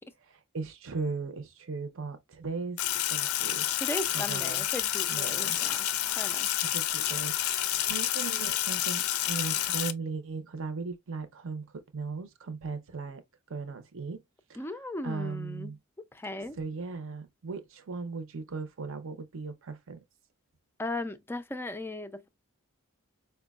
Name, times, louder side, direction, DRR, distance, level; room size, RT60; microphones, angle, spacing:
voice 1, 0.3-2.8 3.1-3.7 4.1-4.6 5.1-5.6 6.6-13.2 13.5-14.2 14.5-14.7 15.0-15.8 16.6-20.0, right 4 dB, 65° right, 0.7 m, -37 dB
Sink (filling or washing), 2.8-9.9, left 12 dB, 85° left, 0.4 m, -29 dB
voice 2, 3.8-5.9 6.2-6.5 14.6-15.8 16.1-16.6 20.8-22.3, left 2 dB, 10° left, 0.3 m, -37 dB
4.6 x 2.2 x 2.3 m
head